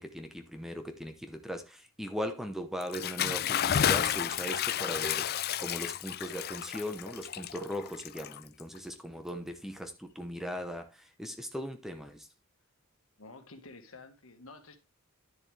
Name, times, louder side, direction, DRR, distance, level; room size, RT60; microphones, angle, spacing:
voice 1, 0.0-12.3, equal, ahead, 0.9 m, -39 dB
Bathtub (filling or washing) / Splash splatter, 2.8-8.8, left 9 dB, 45° left, 0.4 m, -31 dB
voice 2, 13.2-14.8, left 3 dB, 65° left, 1.6 m, -50 dB
10.5 x 7.1 x 3.3 m
head